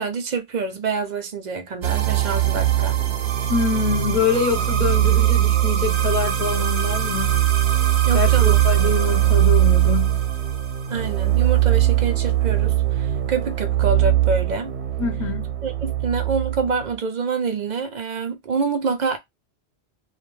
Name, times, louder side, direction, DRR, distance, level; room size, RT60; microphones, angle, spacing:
voice 1, 0.0-3.0 8.1-8.6 10.9-14.7 15.6-19.2, right 4 dB, 55° right, 0.5 m, -26 dB
sound 1, 1.8-17.0, right 13 dB, 90° right, 0.9 m, -20 dB
voice 2, 3.5-7.4 8.1-10.2 15.0-15.5, left 6 dB, 50° left, 0.8 m, -25 dB
2.2 x 2.1 x 3.0 m
omnidirectional pair, 1.1 m